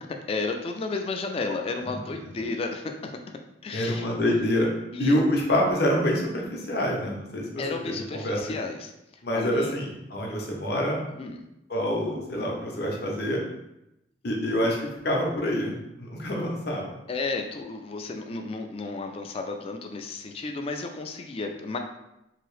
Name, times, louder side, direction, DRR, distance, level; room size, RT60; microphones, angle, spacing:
voice 1, 0.3-3.1 3.6-4.1 4.9-5.2 7.6-8.9 9.3-9.7 11.2-11.4 17.1-21.8, left 3 dB, 30° left, 4 dB, 0.3 m, -32 dB
voice 2, 3.7-4.7 5.0-8.5 9.2-11.0 11.7-13.4 14.2-14.8 15.0-16.9, left 1 dB, 60° left, -1 dB, 0.7 m, -26 dB
2.9 x 2.7 x 3.1 m, 0.88 s
head